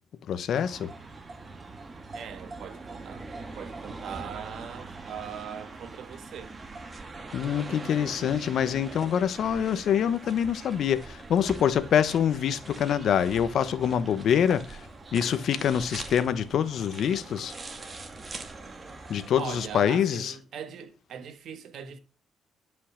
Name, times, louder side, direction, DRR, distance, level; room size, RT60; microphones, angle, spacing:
voice 1, 0.3-0.9 7.3-14.9 15.1-17.5 19.1-20.3, left 8 dB, 65° left, 1.0 m, -25 dB
sound 1, 0.5-19.8, right 3 dB, 30° right, 2.2 m, -42 dB
voice 2, 2.1-3.3 3.6-6.5 19.3-22.0, right 8 dB, 70° right, 1.7 m, -40 dB
11.5 x 5.7 x 6.4 m
cardioid pair, 90°, 0 cm